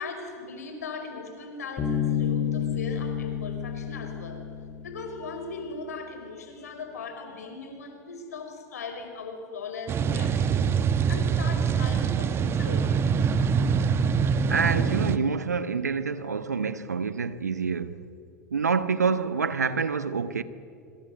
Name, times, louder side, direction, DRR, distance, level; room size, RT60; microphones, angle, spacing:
voice 1, 0.0-4.5 4.8-10.7 11.1-13.0, left 4 dB, 75° left, 5.4 m, -38 dB
Bass guitar, 1.8-5.5, left 8 dB, 30° left, 5.3 m, -30 dB
sound 1, 9.9-15.2, right 6 dB, 30° right, 1.1 m, -24 dB
voice 2, 14.5-18.0 18.5-20.4, right 5 dB, 85° right, 1.3 m, -27 dB
26.0 x 25.5 x 8.3 m
figure-of-eight pair, 90°, 9 cm